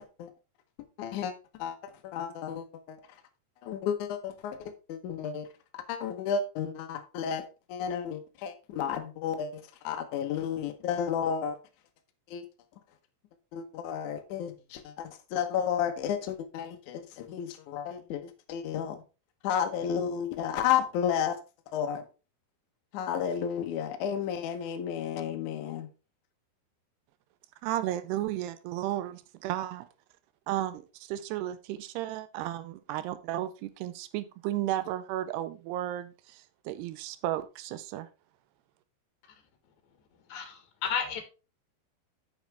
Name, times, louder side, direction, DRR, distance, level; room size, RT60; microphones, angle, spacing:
voice 1, 1.0-3.2 3.6-5.5 5.7-11.6 12.3-12.5 13.5-19.0 19.4-21.4 21.7-22.1 22.9-25.9, left 8 dB, 90° left, 6 dB, 1.7 m, -32 dB
voice 2, 27.6-29.9 30.5-38.1, right 13 dB, 80° right, 12 dB, 2.5 m, -34 dB
voice 3, 40.3-41.2, left 7 dB, 60° left, 6 dB, 2.2 m, -32 dB
9.2 x 6.3 x 3.4 m, 0.31 s
omnidirectional pair, 5.0 m